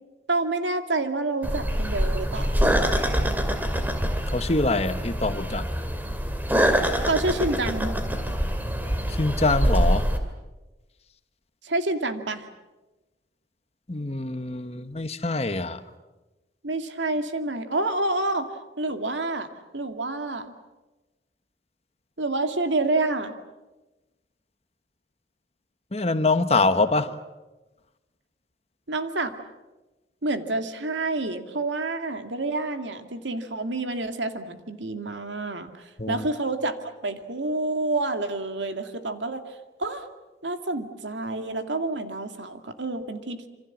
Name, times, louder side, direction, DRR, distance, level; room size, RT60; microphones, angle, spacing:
voice 1, 0.3-2.6 7.0-8.0 11.6-12.5 16.6-18.5 18.8-19.5 19.7-20.5 22.2-23.3 28.9-29.3 30.2-40.1 40.4-43.5, right 2 dB, 90° right, 2.3 m, -28 dB
sound 1, 1.4-10.2, equal, 10° right, 2.4 m, -25 dB
voice 2, 4.3-5.7 9.1-10.1 13.9-15.8 25.9-27.2 36.0-36.2, left 3 dB, 35° left, 1.2 m, -24 dB
27.0 x 26.0 x 7.4 m
head